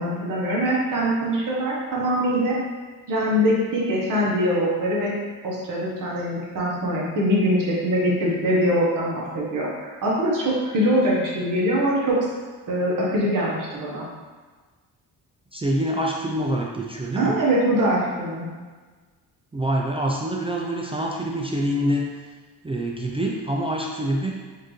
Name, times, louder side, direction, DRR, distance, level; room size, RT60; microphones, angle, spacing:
voice 1, 0.0-2.6 3.1-5.1 5.4-12.2 12.7-14.1 17.1-18.5, equal, 50° right, -5 dB, 1.1 m, -23 dB
voice 2, 15.5-17.3 19.5-22.1 22.6-24.3, right 1 dB, 15° right, -2 dB, 0.4 m, -25 dB
4.3 x 2.6 x 3.1 m, 1.4 s
cardioid pair, 85°, 41 cm